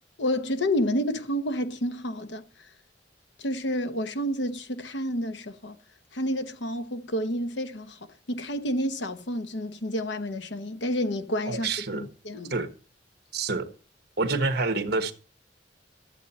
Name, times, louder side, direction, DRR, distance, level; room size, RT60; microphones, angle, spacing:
voice 1, 0.2-2.4 3.4-5.8 6.1-8.0 8.3-12.5, equal, 75° left, 1.0 m, -29 dB
voice 2, 11.5-12.1 12.5-12.7 13.3-13.7 14.2-15.1, right 3 dB, 60° right, 1.4 m, -27 dB
13.0 x 7.9 x 4.2 m
head